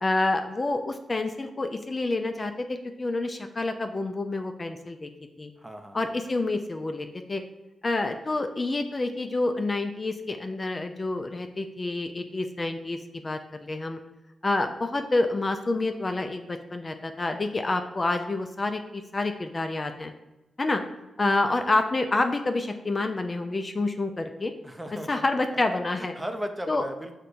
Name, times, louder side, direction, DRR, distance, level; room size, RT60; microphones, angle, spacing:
voice 1, 0.0-5.1 5.4-5.5 5.9-7.4 7.8-13.0 13.2-14.0 14.4-20.1 20.6-20.8 21.2-24.5 25.1-26.1 26.7-26.8, left 2 dB, 40° left, 6 dB, 0.3 m, -28 dB
voice 2, 5.6-6.0 24.6-25.2 26.0-27.2, equal, 10° right, 5 dB, 0.5 m, -36 dB
6.4 x 2.2 x 2.5 m, 1.0 s
supercardioid pair, 45°, 0 cm